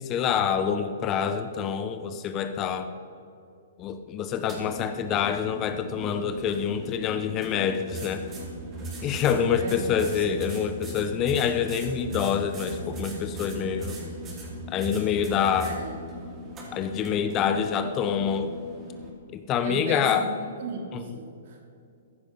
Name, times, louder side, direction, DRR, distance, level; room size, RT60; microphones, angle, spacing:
voice 1, 0.0-2.9 3.8-8.3 9.0-14.0 14.7-15.8 16.7-18.5 19.3-20.3 20.9-21.2, left 7 dB, 25° left, 10 dB, 0.8 m, -26 dB
sound 1, 4.3-19.1, equal, 20° right, 3.6 m, -39 dB
voice 2, 9.4-10.4 15.6-16.1 19.6-20.3 20.6-21.6, right 4 dB, 60° right, 1 dB, 3.3 m, -37 dB
15.0 x 10.5 x 5.6 m, 2.5 s
hypercardioid pair, 140°, 0 cm